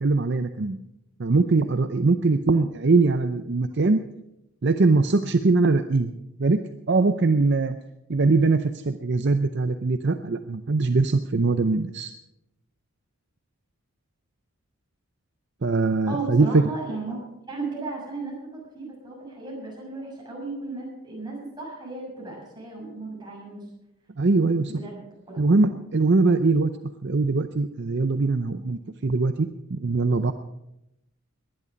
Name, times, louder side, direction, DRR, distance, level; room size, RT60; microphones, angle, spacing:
voice 1, 0.0-0.8 1.2-4.0 4.6-6.6 6.9-7.8 8.1-12.1 15.6-16.6 24.2-24.7 25.4-26.7 27.0-30.3, right 3 dB, 50° right, 9 dB, 0.6 m, -22 dB
voice 2, 16.1-17.2 17.5-23.7 24.7-25.0 25.3-25.4, right 3 dB, 20° right, -4 dB, 6.6 m, -35 dB
19.5 x 11.0 x 5.2 m, 0.87 s
head